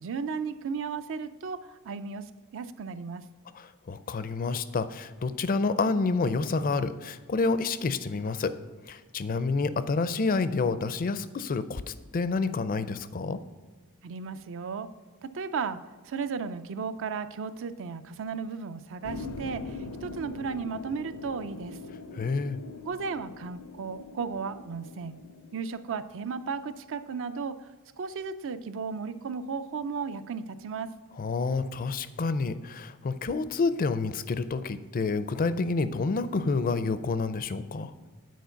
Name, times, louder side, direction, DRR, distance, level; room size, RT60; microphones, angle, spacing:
voice 1, 0.0-3.2 14.0-14.9 15.2-21.8 22.8-25.2 25.5-27.7 28.0-30.9, right 5 dB, 60° right, 12 dB, 0.5 m, -35 dB
voice 2, 3.5-8.5 8.9-13.4 22.1-22.6 31.2-37.9, left 4 dB, 40° left, 13 dB, 0.4 m, -29 dB
sound 1, 19.0-25.6, left 3 dB, 80° left, 0.6 m, -42 dB
9.3 x 4.5 x 5.7 m, 1.4 s
head